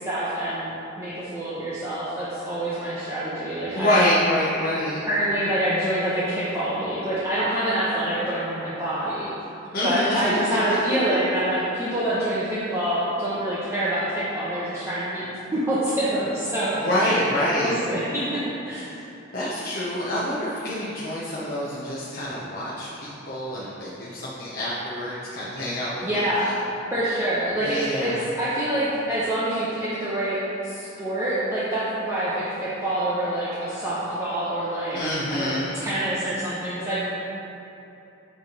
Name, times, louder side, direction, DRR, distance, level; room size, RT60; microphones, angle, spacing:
voice 1, 0.0-4.1 5.1-9.3 9.8-17.2 17.5-18.8 26.0-26.6 26.9-28.1 28.4-35.0 35.3-37.1, right 1 dB, 15° right, -11 dB, 0.9 m, -26 dB
voice 2, 3.7-5.0 9.7-10.8 11.1-11.2 16.8-17.8 19.3-26.2 27.6-28.2 34.9-35.7, left 1 dB, 50° left, -8 dB, 0.9 m, -26 dB
8.3 x 3.6 x 5.3 m, 3.0 s
head